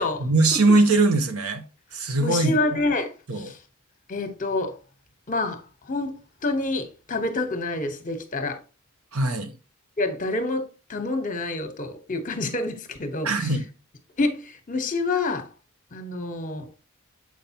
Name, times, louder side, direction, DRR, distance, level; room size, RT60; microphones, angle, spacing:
voice 1, 0.2-1.6 1.9-2.5 3.3-3.5 9.1-9.5 13.2-13.6, right 2 dB, 90° right, 1.1 m, -21 dB
voice 2, 2.2-3.6 4.1-4.8 5.3-5.6 5.9-6.1 6.4-8.6 10.0-10.6 10.9-13.5 14.2-15.5 15.9-16.7, left 2 dB, 40° left, 1.1 m, -27 dB
7.5 x 5.2 x 2.9 m
head